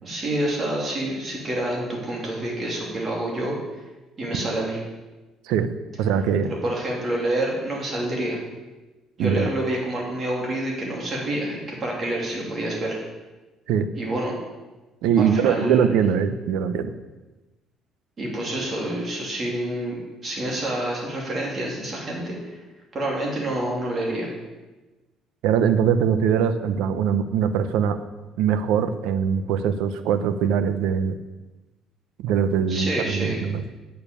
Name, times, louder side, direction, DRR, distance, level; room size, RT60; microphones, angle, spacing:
voice 1, 0.0-3.6 4.2-4.8 6.4-8.4 9.2-13.0 13.9-14.4 15.2-15.9 18.2-22.6 22.9-24.3 32.7-33.5, right 1 dB, 30° right, -2 dB, 3.2 m, -28 dB
voice 2, 6.0-6.5 9.2-9.5 13.7-13.9 15.0-16.9 25.4-28.0 28.4-31.2 32.2-33.6, right 7 dB, 85° right, 11 dB, 0.8 m, -22 dB
8.8 x 7.1 x 7.1 m, 1.1 s
cardioid pair, 135°, 0 cm